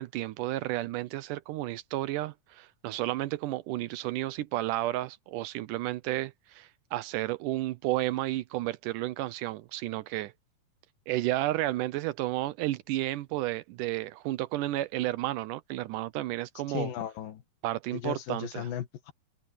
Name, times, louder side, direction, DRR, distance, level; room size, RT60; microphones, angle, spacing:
voice 1, 0.0-10.3 11.1-16.9 17.6-18.7, right 16 dB, 80° right, 2.1 m, -32 dB
voice 2, 16.7-17.4 17.9-19.1, left 9 dB, 90° left, 3.6 m, -36 dB
omnidirectional pair, 3.9 m